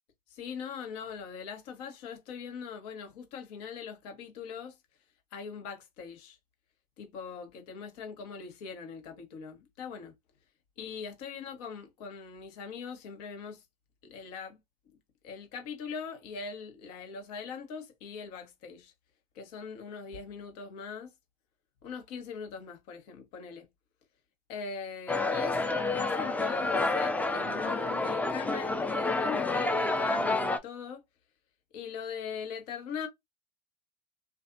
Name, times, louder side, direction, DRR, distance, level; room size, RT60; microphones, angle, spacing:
voice 1, 0.3-4.8 5.3-6.4 7.0-10.1 10.8-13.6 14.0-14.6 15.2-18.9 19.3-21.1 21.8-23.6 24.5-25.6 26.0-31.0 31.7-33.1, left 6 dB, 65° left, 1.1 m, -41 dB
sound 1, 25.1-30.6, left 2 dB, 5° left, 0.4 m, -29 dB
2.5 x 2.4 x 2.4 m
hypercardioid pair, 90°, 21 cm